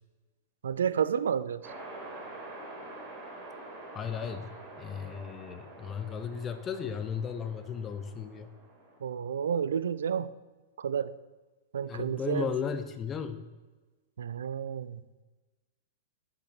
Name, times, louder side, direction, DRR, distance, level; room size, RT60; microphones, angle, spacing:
voice 1, 0.6-1.7 9.0-10.3 10.8-11.1 11.7-12.5 14.2-15.0, right 7 dB, 65° right, 16 dB, 0.4 m, -30 dB
sound 1, 1.6-9.0, right 2 dB, 30° right, 2.8 m, -46 dB
voice 2, 3.9-4.5 4.8-8.5 11.9-13.4, left 6 dB, 25° left, 10 dB, 0.6 m, -35 dB
7.5 x 6.7 x 5.9 m, 1.2 s
figure-of-eight pair, 100°, 0 cm